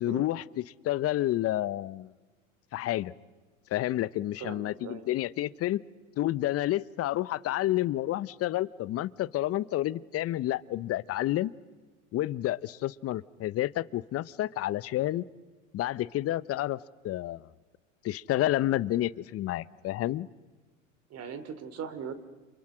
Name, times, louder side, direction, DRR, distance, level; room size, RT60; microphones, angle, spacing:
voice 1, 0.0-2.1 2.7-3.1 3.7-5.8 6.2-11.5 12.1-15.3 15.7-16.8 17.0-17.5 18.0-20.3, left 14 dB, 35° left, 19 dB, 0.9 m, -30 dB
voice 2, 4.4-5.0 21.1-22.1, right 7 dB, 40° right, 12 dB, 3.0 m, -39 dB
29.5 x 28.0 x 6.2 m, 1.2 s
hypercardioid pair, 90°, 40 cm